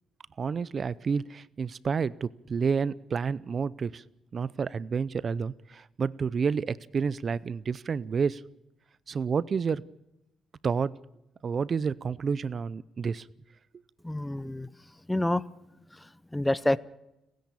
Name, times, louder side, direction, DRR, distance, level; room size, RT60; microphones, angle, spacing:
voice 1, 0.4-4.0 4.3-8.4 9.1-9.8 10.6-11.0 11.4-13.3, right 5 dB, 45° right, 21 dB, 0.6 m, -29 dB
voice 2, 14.0-14.7 15.1-15.4 15.9-16.8, left 1 dB, 10° left, 19 dB, 0.8 m, -28 dB
30.0 x 10.5 x 8.6 m, 0.90 s
cardioid pair, 90°, 0 cm